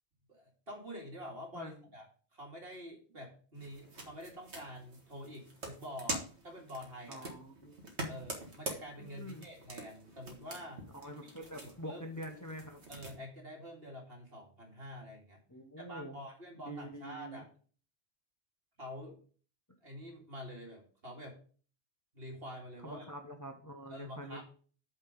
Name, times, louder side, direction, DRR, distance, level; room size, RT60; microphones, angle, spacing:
voice 1, 0.3-2.1 2.3-7.3 8.0-11.2 11.6-12.0 12.9-15.4 15.8-17.5 18.8-19.2 19.8-21.4 22.1-23.1 23.9-24.4, equal, 60° right, 0 dB, 2.5 m, -47 dB
Elastic Hair Band Snapping, 3.5-13.2, right 1 dB, 85° right, 1.9 m, -45 dB
voice 2, 7.1-7.8 9.0-9.4 10.9-12.8 15.5-16.2 16.6-17.4 22.8-24.4, equal, 20° left, 3 dB, 1.0 m, -45 dB
8.5 x 4.5 x 5.2 m, 0.42 s
omnidirectional pair, 1.1 m